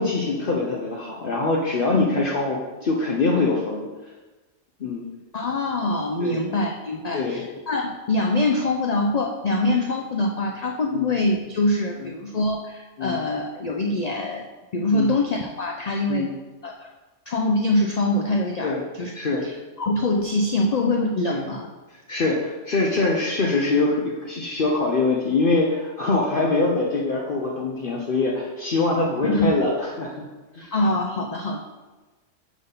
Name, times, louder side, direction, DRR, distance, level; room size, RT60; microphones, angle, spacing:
voice 1, 0.0-3.8 4.8-5.0 6.2-6.4 7.1-7.4 10.9-11.1 12.0-12.1 13.0-13.2 14.9-15.2 16.1-16.3 18.6-18.8 19.1-19.4 21.3-21.5 22.1-30.3 30.5-30.7, left 3 dB, 50° left, -2 dB, 0.8 m, -23 dB
voice 2, 5.3-14.5 14.7-16.3 16.6-16.9 17.3-19.1 19.4-19.5 19.8-21.7 29.2-29.5 30.7-31.6, left 2 dB, 85° left, 2 dB, 0.3 m, -24 dB
5.6 x 3.6 x 5.5 m, 1.2 s
omnidirectional pair, 1.3 m